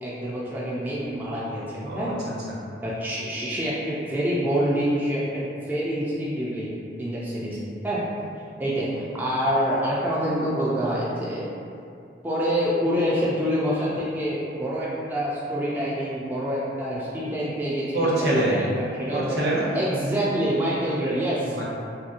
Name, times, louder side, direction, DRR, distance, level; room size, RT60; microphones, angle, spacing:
voice 1, 0.0-2.1 2.8-6.7 7.0-7.6 7.8-8.0 8.6-11.5 12.2-19.2 19.7-21.6, equal, 10° right, -8 dB, 0.3 m, -26 dB
voice 2, 17.9-18.6 19.1-19.7 21.5-21.6, right 1 dB, 60° right, -6 dB, 0.7 m, -24 dB
2.9 x 2.8 x 2.4 m, 2.5 s
head